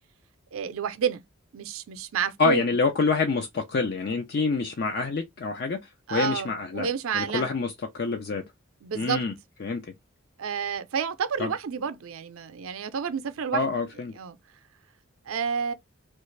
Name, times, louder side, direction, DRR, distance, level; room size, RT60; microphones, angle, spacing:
voice 1, 0.5-1.2 1.5-2.7 6.1-7.5 8.8-9.2 10.4-13.7 14.2-14.4 15.3-15.7, right 6 dB, 85° right, 0.5 m, -29 dB
voice 2, 2.4-6.9 7.1-8.4 8.9-9.3 9.6-9.9 11.4-11.5 13.5-14.1, left 4 dB, 50° left, 0.4 m, -27 dB
3.2 x 2.4 x 3.1 m
head